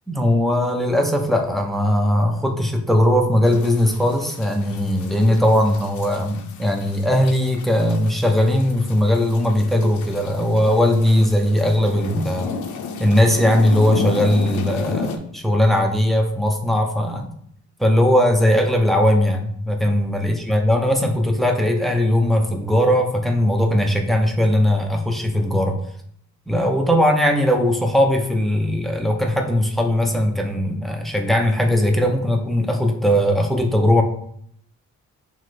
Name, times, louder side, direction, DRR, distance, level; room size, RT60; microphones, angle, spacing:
voice 1, 0.1-12.5 13.0-17.3 17.8-25.8 26.5-34.0, left 1 dB, ahead, 2 dB, 0.3 m, -19 dB
sound 1, 3.5-15.2, left 4 dB, 75° left, 0.5 m, -32 dB
5.7 x 2.1 x 3.1 m, 0.67 s
wide cardioid pair, 170°, 30 cm